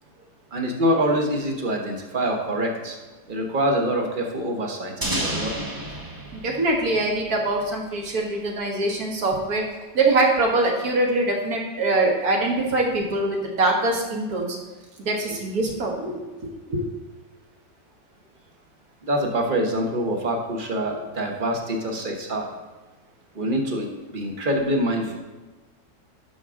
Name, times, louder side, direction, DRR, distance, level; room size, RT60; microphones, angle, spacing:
voice 1, 0.5-3.0 3.3-5.7 19.0-22.5 23.3-23.9 24.1-25.2, right 1 dB, 35° right, 3 dB, 1.1 m, -25 dB
sound 1, 5.0-7.8, right 1 dB, 15° right, 0.7 m, -31 dB
voice 2, 6.3-9.6 9.9-14.6 15.0-16.2 16.7-16.8 22.0-22.1, right 2 dB, 60° right, 0 dB, 1.9 m, -23 dB
11.0 x 6.0 x 3.7 m, 1.2 s
omnidirectional pair, 1.9 m